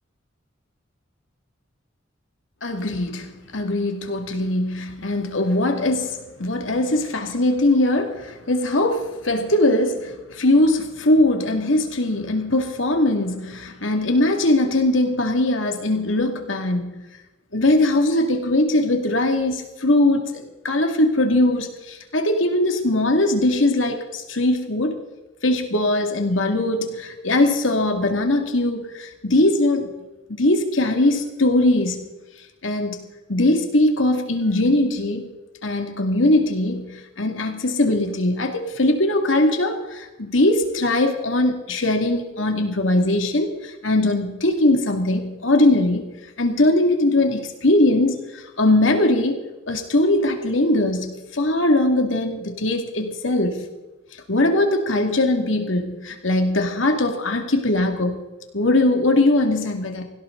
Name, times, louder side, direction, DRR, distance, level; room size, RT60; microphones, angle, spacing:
voice 1, 2.6-16.9 17.5-25.0 25.4-29.9 30.3-32.0 32.6-35.3 35.6-46.1 46.4-53.6 54.3-58.2 58.5-60.0, left 1 dB, 75° left, 2.3 m, -20 dB
18.0 x 16.5 x 3.9 m
head